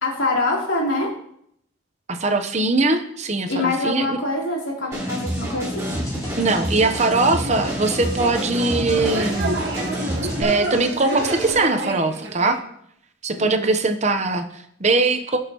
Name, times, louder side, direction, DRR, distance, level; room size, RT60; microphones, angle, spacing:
voice 1, 0.0-1.1 3.5-5.8 13.4-13.7, left 2 dB, 85° left, -3 dB, 3.3 m, -24 dB
voice 2, 2.1-4.2 6.4-9.5 10.4-12.6 13.2-15.4, right 3 dB, 35° right, 7 dB, 0.9 m, -21 dB
sound 1, 4.9-10.4, equal, 15° right, 4.3 m, -28 dB
sound 2, 5.9-11.5, equal, 20° left, 3.2 m, -35 dB
sound 3, 7.3-12.6, right 1 dB, 60° right, 1.8 m, -29 dB
17.0 x 6.4 x 3.0 m, 0.70 s
head